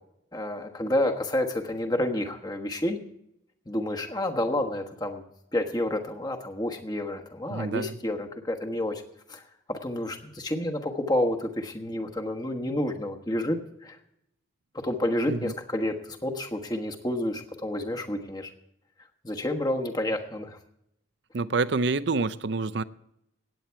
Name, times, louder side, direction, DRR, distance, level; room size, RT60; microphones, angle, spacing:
voice 1, 0.3-3.0 3.7-5.2 5.5-9.0 9.3-9.4 9.7-14.0 14.7-18.5 19.2-20.6, left 1 dB, 20° left, 4 dB, 1.3 m, -29 dB
voice 2, 7.5-8.0 15.3-15.5 21.3-22.8, right 3 dB, 65° right, 15 dB, 0.6 m, -27 dB
17.0 x 9.2 x 4.6 m, 0.79 s
head